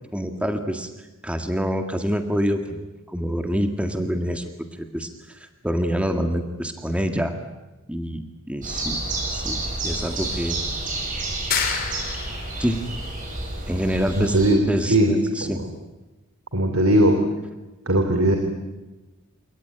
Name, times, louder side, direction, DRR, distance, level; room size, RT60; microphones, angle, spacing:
voice 1, 0.1-0.9 1.2-4.4 4.7-7.3 7.9-10.6 12.6-12.9 13.7-14.4 14.7-15.6, equal, 5° right, 5 dB, 1.8 m, -26 dB
sound 1, 8.6-14.5, right 2 dB, 40° right, 7.1 m, -30 dB
sound 2, 11.5-12.6, left 7 dB, 45° left, 3.1 m, -27 dB
voice 2, 14.1-14.6 14.9-15.1 15.4-15.7 16.5-17.2 17.9-18.4, right 1 dB, 85° right, 6 dB, 3.2 m, -19 dB
29.0 x 18.5 x 9.9 m, 1.1 s
head